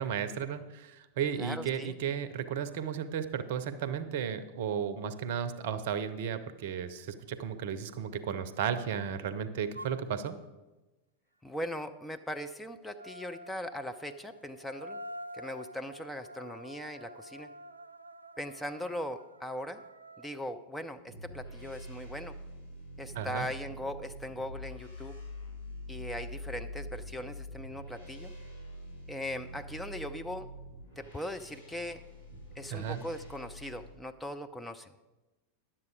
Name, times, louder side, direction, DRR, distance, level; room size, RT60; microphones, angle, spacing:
voice 1, 0.0-10.4 23.1-23.5 32.7-33.0, right 8 dB, 50° right, 12 dB, 0.6 m, -34 dB
voice 2, 1.4-2.0 11.4-15.0 15.3-17.5 18.4-19.8 20.2-22.4 23.0-25.2 25.9-28.3 29.1-30.5 31.0-32.0 32.6-34.9, left 1 dB, 5° left, 7 dB, 0.5 m, -39 dB
sound 1, 9.8-10.0 12.9-20.4, equal, 80° right, 0.3 m, -48 dB
sound 2, 21.1-33.9, equal, 75° left, 3.1 m, -45 dB
11.0 x 7.5 x 4.8 m, 1.1 s
figure-of-eight pair, 90°, 0 cm